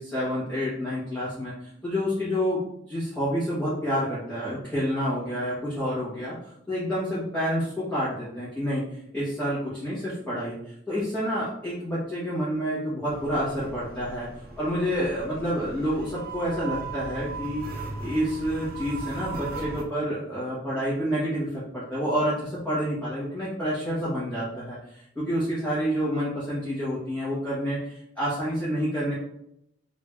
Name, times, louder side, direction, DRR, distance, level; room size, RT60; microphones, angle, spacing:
voice 1, 0.0-1.5 1.8-2.6 2.9-6.3 6.7-8.8 9.1-10.5 10.9-14.3 14.6-17.7 18.0-29.1, equal, 10° left, -12 dB, 1.4 m, -28 dB
sound 1, 13.0-19.8, right 3 dB, 55° right, 0.7 m, -38 dB
3.5 x 2.9 x 3.4 m, 0.74 s
head